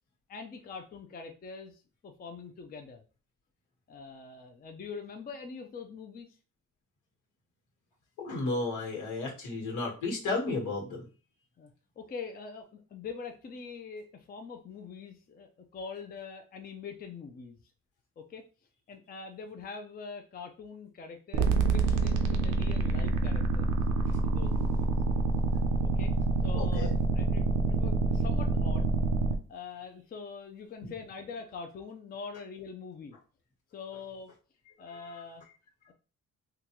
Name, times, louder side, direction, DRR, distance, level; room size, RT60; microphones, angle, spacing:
voice 1, 0.3-3.0 3.9-6.4 11.6-17.6 18.2-18.4 18.9-23.8 24.2-25.0 25.8-26.1 26.4-28.9 29.5-33.2 33.7-34.3 34.8-35.4, left 5 dB, 30° left, 5 dB, 0.5 m, -44 dB
voice 2, 8.2-11.0 26.5-26.9 30.8-30.9 34.9-35.2, left 3 dB, 75° left, -2 dB, 1.5 m, -33 dB
sound 1, 21.3-29.4, right 3 dB, 80° right, 0.5 m, -27 dB
3.7 x 2.3 x 2.9 m, 0.36 s
cardioid pair, 90°, 30 cm